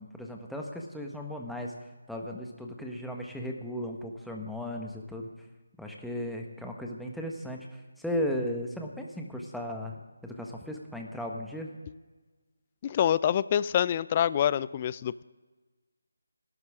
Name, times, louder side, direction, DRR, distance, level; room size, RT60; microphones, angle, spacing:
voice 1, 0.0-1.7 2.1-5.3 5.8-11.7, equal, ahead, 0 dB, 1.4 m, -36 dB
voice 2, 12.8-15.2, left 9 dB, 30° left, 18 dB, 0.4 m, -26 dB
28.5 x 12.5 x 3.7 m, 1.3 s
figure-of-eight pair, 155°, 0 cm